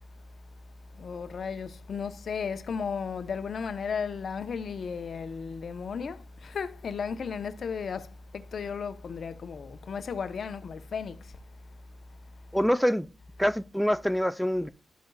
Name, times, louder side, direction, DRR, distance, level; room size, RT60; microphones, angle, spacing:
voice 1, 0.9-11.4, left 6 dB, 65° left, 0.8 m, -35 dB
voice 2, 12.5-13.1 13.4-14.7, equal, ahead, 0.5 m, -25 dB
12.0 x 5.3 x 2.3 m
cardioid pair, 65°, 0 cm